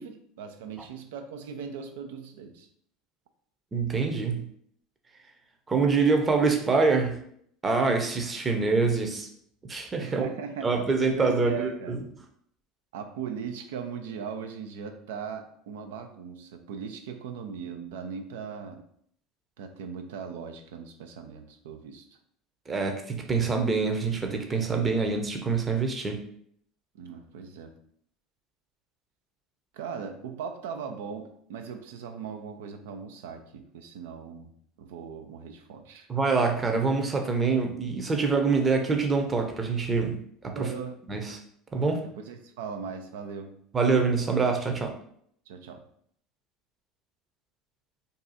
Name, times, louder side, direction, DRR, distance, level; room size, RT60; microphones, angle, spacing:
voice 1, 0.0-2.7 10.0-10.8 11.2-11.9 12.9-18.8 19.6-22.1 26.9-27.7 29.7-34.5 34.8-36.1 40.5-41.0 42.0-43.6 45.5-45.8, right 6 dB, 80° right, 6 dB, 0.4 m, -39 dB
voice 2, 3.7-4.5 5.7-7.2 7.6-9.3 9.7-10.3 10.6-12.0 22.7-26.2 36.1-40.7 41.1-41.4 41.7-42.1 43.7-45.0, right 4 dB, 25° right, 4 dB, 0.7 m, -25 dB
2.7 x 2.4 x 4.0 m, 0.66 s
hypercardioid pair, 90°, 0 cm